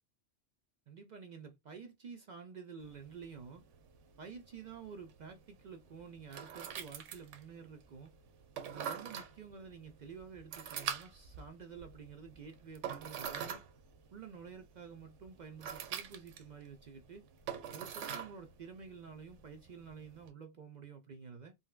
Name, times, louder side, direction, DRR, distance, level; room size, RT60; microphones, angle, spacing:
voice 1, 0.9-3.6 4.2-8.1 8.7-13.6 14.1-17.2 17.7-21.5, right 6 dB, 65° right, 0.4 m, -50 dB
sound 1, 2.8-20.3, right 8 dB, 85° right, 1.0 m, -46 dB
3.9 x 2.1 x 2.3 m
omnidirectional pair, 1.2 m